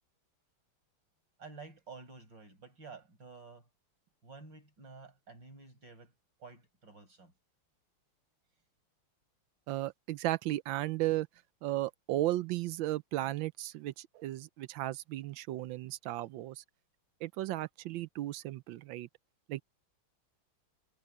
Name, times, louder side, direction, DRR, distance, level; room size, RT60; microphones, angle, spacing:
voice 1, 1.4-3.7 4.2-6.1 6.4-7.3, right 4 dB, 55° right, 6.9 m, -51 dB
voice 2, 9.7-11.3 11.6-16.6 17.2-19.1 19.5-19.6, right 16 dB, 75° right, 1.2 m, -35 dB
omnidirectional pair, 2.3 m